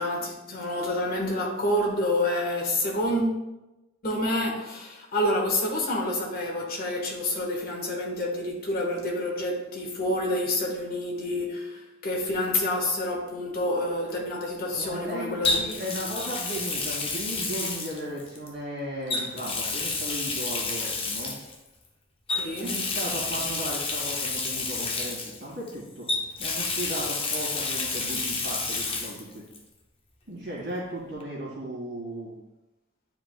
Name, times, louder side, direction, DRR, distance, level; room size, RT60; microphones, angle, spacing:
voice 1, 0.0-3.4 4.0-15.7 16.0-16.3 22.4-22.8, left 1 dB, 50° left, 1.4 m, -28 dB
Water tap faucet, 12.5-12.7 15.4-18.5 19.1-21.6 22.3-25.7 26.1-29.2 29.5-29.6 31.2-31.3, left 3 dB, 30° left, 0.8 m, -30 dB
voice 2, 14.7-21.3 22.6-26.1 26.4-29.4 30.3-32.3, right 1 dB, 60° right, 2.1 m, -36 dB
9.5 x 4.8 x 2.2 m
head